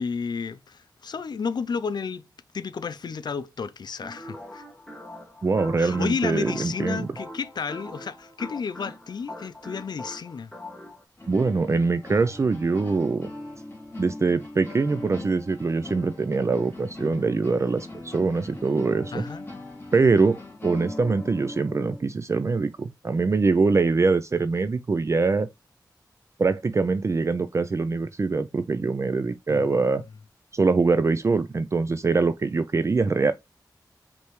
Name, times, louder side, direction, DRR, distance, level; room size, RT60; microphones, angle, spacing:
voice 1, 0.0-2.3 2.5-4.6 5.8-10.5 19.1-19.4 29.5-30.0, left 5 dB, 75° left, 0.4 m, -32 dB
sound 1, 4.0-11.0, left 1 dB, 5° left, 1.2 m, -42 dB
voice 2, 5.4-7.1 11.3-13.3 14.0-19.2 19.9-20.4 20.6-25.5 26.4-30.0 30.5-33.3, right 4 dB, 40° right, 0.4 m, -23 dB
sound 2, 11.2-22.0, left 2 dB, 30° left, 2.4 m, -40 dB
5.1 x 3.4 x 3.0 m
wide cardioid pair, 100°, 7 cm